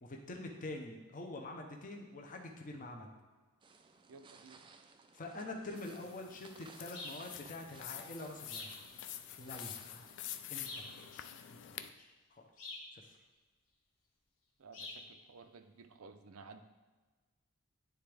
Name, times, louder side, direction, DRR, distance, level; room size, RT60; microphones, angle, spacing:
voice 1, 0.0-3.1 5.1-8.8 9.4-10.0 10.5-12.4 12.9-13.0, left 2 dB, 40° left, 2 dB, 0.8 m, -46 dB
sound 1, 3.6-10.2, right 4 dB, 25° right, 0.3 m, -60 dB
voice 2, 4.1-4.7 14.6-16.6, right 4 dB, 75° right, 8 dB, 0.5 m, -55 dB
sound 2, 5.8-11.9, left 11 dB, 55° left, 0.3 m, -48 dB
sound 3, 6.9-7.2 8.5-8.8 10.6-11.0 12.6-12.9 14.7-15.0, left 2 dB, 75° left, 1.5 m, -46 dB
10.0 x 3.4 x 3.4 m, 1.3 s
head